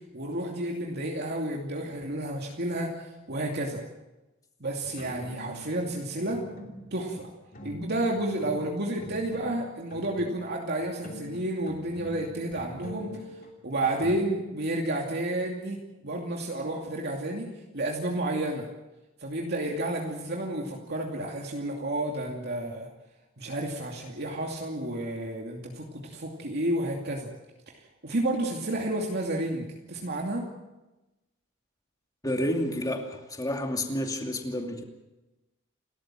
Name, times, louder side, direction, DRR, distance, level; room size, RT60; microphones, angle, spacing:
voice 1, 0.1-2.9 3.3-3.8 4.6-6.4 6.9-7.3 7.6-13.1 13.6-15.8 16.0-17.5 17.7-18.7 19.2-22.9 23.4-27.3 28.0-30.5, right 1 dB, 55° right, 0 dB, 2.6 m, -31 dB
sound 1, 4.8-5.9 6.3-7.1 7.5-10.5 10.8-14.2, equal, 45° left, 3.2 m, -44 dB
voice 2, 32.2-34.8, left 1 dB, 20° left, 3 dB, 2.6 m, -30 dB
29.5 x 13.5 x 7.6 m, 1.0 s
head